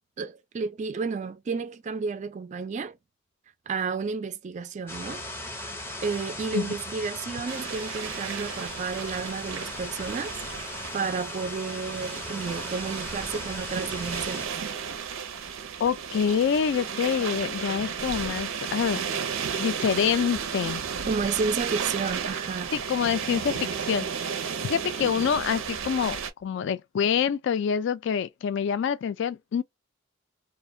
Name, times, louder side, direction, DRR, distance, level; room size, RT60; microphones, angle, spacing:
voice 1, 0.2-3.0 3.7-5.2 6.0-10.4 10.9-14.5 21.0-22.7, right 5 dB, 35° right, 0.3 m, -31 dB
sound 1, 4.9-14.5, left 1 dB, 10° left, 0.6 m, -38 dB
sound 2, 7.5-26.3, right 7 dB, 90° right, 0.5 m, -33 dB
voice 2, 15.8-19.0 19.6-20.8 22.7-29.6, left 7 dB, 60° left, 0.3 m, -26 dB
2.4 x 2.1 x 2.6 m
head